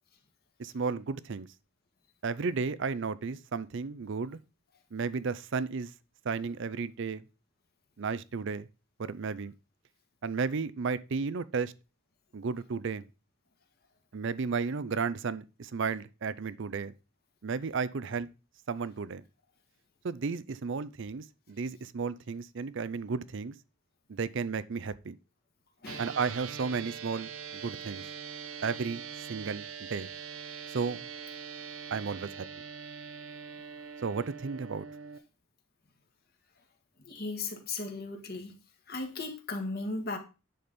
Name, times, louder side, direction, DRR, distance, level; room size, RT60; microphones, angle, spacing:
voice 1, 0.6-1.5 2.2-4.4 4.9-5.9 6.2-7.2 8.0-8.7 9.0-9.5 10.2-11.7 12.3-13.1 14.1-16.9 17.4-18.3 18.7-19.2 20.0-23.5 24.1-25.1 26.0-28.0 28.6-30.1 30.7-31.0 31.9-32.5 34.0-34.9, right 5 dB, 60° right, 0.5 m, -33 dB
sound 1, 25.9-35.2, right 6 dB, 80° right, 0.8 m, -43 dB
voice 2, 37.0-38.5 38.9-40.2, left 3 dB, 45° left, 1.7 m, -36 dB
10.0 x 4.4 x 5.1 m
head